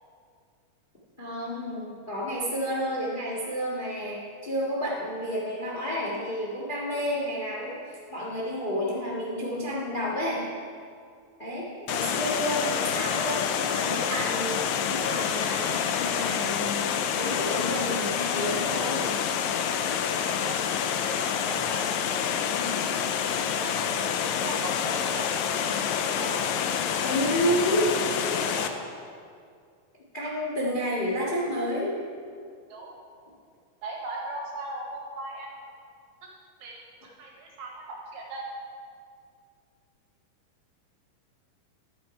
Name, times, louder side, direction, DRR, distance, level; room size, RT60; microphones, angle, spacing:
voice 1, 1.2-10.4 11.4-19.1 22.5-22.8 27.0-27.9 30.1-31.9, equal, 65° left, -5 dB, 0.5 m, -30 dB
Water, 11.9-28.7, left 8 dB, 85° left, 1.7 m, -28 dB
voice 2, 20.4-20.7 21.1-22.6 23.3-26.4 27.0-27.5 28.2-28.7 32.7-33.0 33.8-35.5 36.6-38.5, right 2 dB, 65° right, 0 dB, 2.2 m, -39 dB
12.0 x 7.1 x 4.7 m, 2.2 s
omnidirectional pair, 3.9 m